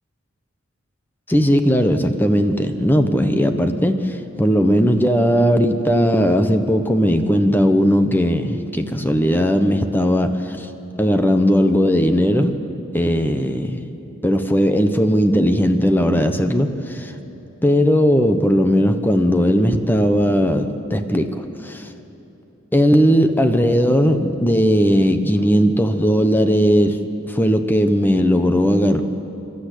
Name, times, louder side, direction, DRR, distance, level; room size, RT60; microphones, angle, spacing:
voice 1, 1.3-10.7 11.0-12.5 12.9-13.9 14.2-17.1 17.6-21.9 22.7-27.0 27.3-29.0, equal, 10° left, 7 dB, 1.0 m, -17 dB
28.5 x 12.5 x 8.3 m, 2.9 s
head